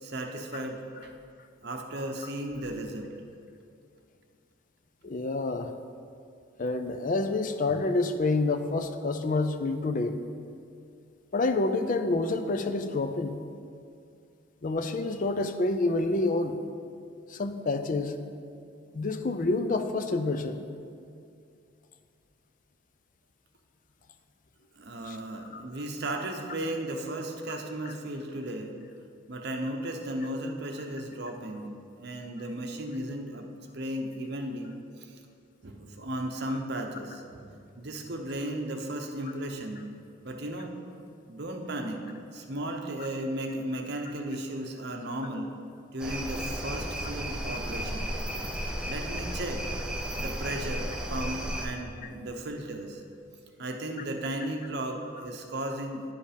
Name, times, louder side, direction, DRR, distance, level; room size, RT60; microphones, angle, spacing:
voice 1, 0.0-1.1 1.6-3.1 24.7-28.7 29.3-31.7 32.0-33.5 33.7-35.2 35.6-39.8 40.2-40.7 41.3-42.0 42.3-45.5 45.9-48.1 48.5-49.6 50.2-53.0 53.6-56.0, right 1 dB, 55° right, 3 dB, 0.8 m, -35 dB
voice 2, 5.0-5.7 6.6-10.2 11.3-13.4 14.6-16.6 17.3-18.1 18.9-20.6 25.1-25.2 25.5-25.6, left 2 dB, 40° left, 8 dB, 0.4 m, -28 dB
sound 1, 46.0-51.7, equal, 5° right, 0.6 m, -34 dB
10.0 x 5.2 x 5.0 m, 2.4 s
head